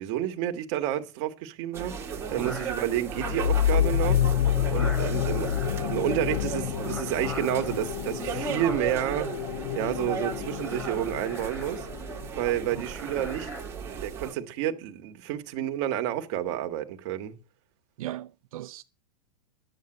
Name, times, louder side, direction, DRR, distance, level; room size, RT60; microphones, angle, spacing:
voice 1, 0.0-4.2 4.7-9.4 9.7-11.9 12.3-13.5 13.8-17.3, right 12 dB, 45° right, 1.7 m, -30 dB
sound 1, 1.7-14.3, right 6 dB, 15° right, 2.2 m, -36 dB
sound 2, 1.9-13.6, left 1 dB, 10° left, 5.3 m, -45 dB
sound 3, 3.1-12.5, left 11 dB, 55° left, 0.6 m, -28 dB
voice 2, 18.0-18.8, right 14 dB, 70° right, 0.5 m, -38 dB
11.0 x 7.6 x 7.8 m
supercardioid pair, 145°, 19 cm